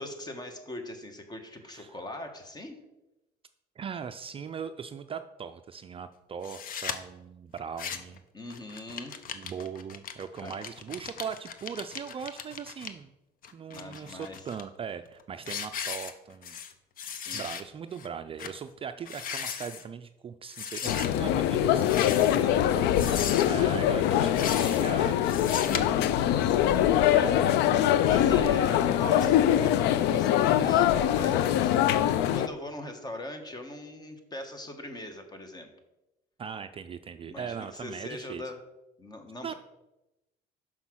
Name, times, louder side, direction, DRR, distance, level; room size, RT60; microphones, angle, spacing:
voice 1, 0.0-2.8 8.3-9.2 10.4-10.5 13.7-14.4 17.0-17.6 22.3-22.8 26.1-27.6 27.9-35.7 37.2-38.6 39.0-39.5, left 1 dB, 25° left, 6 dB, 1.3 m, -41 dB
voice 2, 3.8-8.2 9.3-13.1 13.5-16.6 17.3-22.3 22.7-23.2 23.5-26.5 27.1-27.4 28.1-28.9 36.4-38.4 39.4-39.5, right 7 dB, 35° right, 9 dB, 0.4 m, -39 dB
sound 1, 6.4-7.0 7.6-8.2 8.5-12.9 13.4-14.6 15.1-15.2 15.5-16.7 17.0-17.6 18.0-18.1 18.4-18.6 19.0-19.8 20.5-21.1 21.8-22.5 22.9-23.6 24.2-24.9 25.2-25.8, left 7 dB, 55° left, 0.8 m, -37 dB
sound 2, 20.9-32.5, left 11 dB, 85° left, 0.4 m, -23 dB
6.2 x 5.7 x 6.1 m, 0.95 s
cardioid pair, 110°, 17 cm